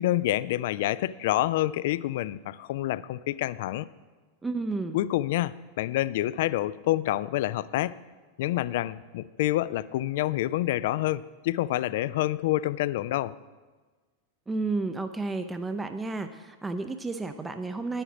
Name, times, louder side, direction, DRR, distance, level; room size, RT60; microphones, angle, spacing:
voice 1, 0.0-3.9 4.9-7.9 8.4-13.3, left 15 dB, 55° left, 18 dB, 0.3 m, -27 dB
voice 2, 4.4-5.0 14.5-18.0, right 3 dB, 10° right, 8 dB, 0.5 m, -31 dB
10.0 x 8.7 x 6.0 m, 1.4 s
figure-of-eight pair, 90°, 0 cm